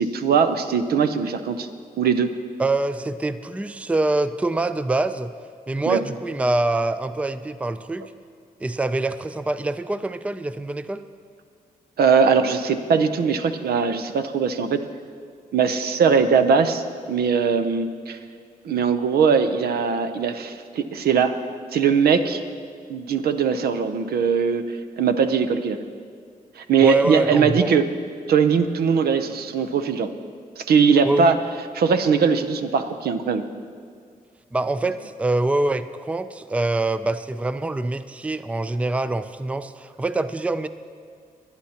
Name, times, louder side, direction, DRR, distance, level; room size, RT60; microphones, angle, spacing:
voice 1, 0.0-1.7 2.0-2.3 5.9-6.0 12.0-14.9 15.5-18.2 18.6-21.4 21.7-22.4 22.9-25.9 26.6-27.8 28.3-30.1 30.6-31.3 31.7-33.4, right 6 dB, 80° right, 9 dB, 0.7 m, -20 dB
voice 2, 2.6-5.3 5.7-8.0 8.6-11.0 26.8-27.8 31.0-31.4 34.5-40.7, right 2 dB, 10° right, 12 dB, 0.4 m, -25 dB
24.5 x 9.6 x 2.9 m, 2.1 s
cardioid pair, 75°, 16 cm